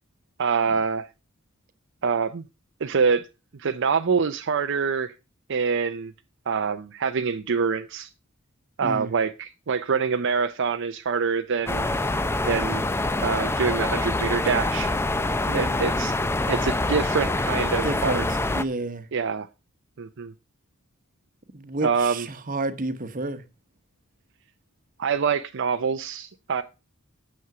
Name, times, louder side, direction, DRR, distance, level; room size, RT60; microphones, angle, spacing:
voice 1, 0.4-1.1 2.0-2.4 2.8-3.3 3.6-5.1 5.5-6.1 6.5-8.1 8.8-11.9 12.5-12.8 13.2-14.9 15.5-16.2 16.5-18.2 19.1-19.5 20.0-20.3 21.8-22.3 25.0-26.6, right 5 dB, 60° right, 0.6 m, -25 dB
voice 2, 8.8-9.2 15.4-15.9 17.7-19.1 21.5-23.4, right 2 dB, 40° right, 1.0 m, -31 dB
sound 1, 11.7-18.6, left 2 dB, 10° left, 0.5 m, -25 dB
9.5 x 7.1 x 4.8 m
head